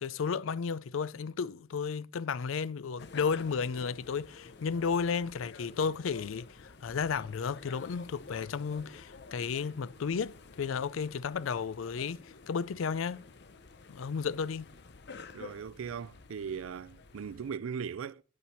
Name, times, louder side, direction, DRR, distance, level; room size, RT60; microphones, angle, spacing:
voice 1, 0.0-13.2 13.9-14.7, left 6 dB, 80° left, 0.4 m, -33 dB
sound 1, 3.0-17.5, left 4 dB, 55° left, 0.8 m, -51 dB
voice 2, 15.3-18.2, right 6 dB, 90° right, 0.4 m, -39 dB
9.1 x 8.5 x 4.3 m
head